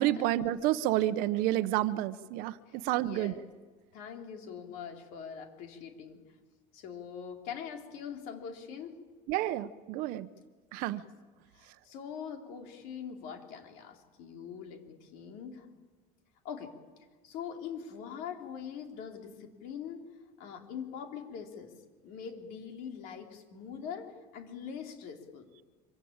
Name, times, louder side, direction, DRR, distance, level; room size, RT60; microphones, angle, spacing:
voice 1, 0.0-3.3 9.3-10.3 10.7-11.0, right 14 dB, 55° right, 14 dB, 0.9 m, -30 dB
voice 2, 2.7-3.4 3.9-6.2 6.7-9.0 10.9-11.0 11.5-15.7 16.4-16.8 17.2-20.0 20.4-21.7 22.0-25.5, left 7 dB, 55° left, 4 dB, 3.7 m, -43 dB
25.5 x 24.5 x 8.8 m, 1.4 s
cardioid pair, 175°, 17 cm